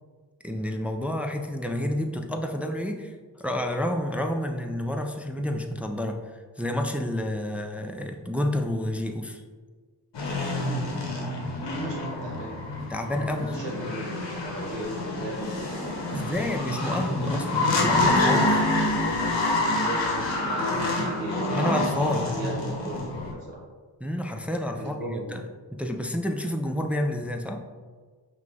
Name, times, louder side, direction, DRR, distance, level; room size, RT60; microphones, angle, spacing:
voice 1, 0.4-9.4 12.9-13.6 16.1-18.6 21.5-22.3 24.0-25.4 25.7-27.6, left 1 dB, 5° right, 3 dB, 0.4 m, -29 dB
sound 1, 10.1-23.3, left 2 dB, 75° left, 1.1 m, -27 dB
voice 2, 11.6-12.6 13.1-16.4 16.9-17.2 18.4-21.8 22.1-23.6 24.7-25.4, right 1 dB, 80° right, -2 dB, 1.2 m, -37 dB
5.6 x 2.4 x 3.4 m, 1.5 s
cardioid pair, 45°, 44 cm